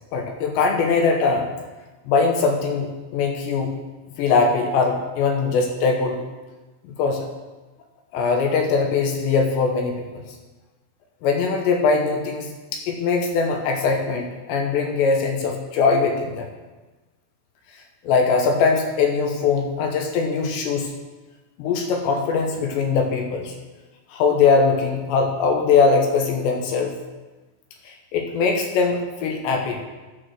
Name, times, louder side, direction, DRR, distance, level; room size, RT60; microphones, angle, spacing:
voice 1, 0.1-1.5 2.1-3.7 4.2-6.2 6.8-7.3 8.1-10.2 11.2-16.5 17.8-20.9 21.6-23.5 24.1-27.0 27.8-29.8, left 4 dB, 75° left, 2 dB, 3.1 m, -21 dB
13.0 x 4.8 x 6.3 m, 1.2 s
omnidirectional pair, 5.3 m